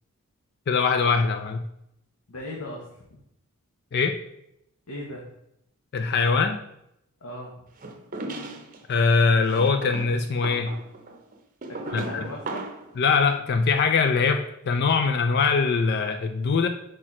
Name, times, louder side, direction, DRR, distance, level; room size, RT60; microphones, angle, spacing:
voice 1, 0.7-1.7 3.9-4.2 5.9-6.6 8.9-10.8 11.9-12.3 13.0-16.7, left 4 dB, 50° left, 7 dB, 0.4 m, -22 dB
voice 2, 2.3-3.2 4.9-5.3 7.2-7.6 11.7-12.7, left 1 dB, 85° left, -2 dB, 1.1 m, -38 dB
sound 1, 7.8-8.8 9.5-12.9, right 2 dB, 40° right, 0.7 m, -36 dB
4.9 x 4.4 x 4.3 m, 0.78 s
head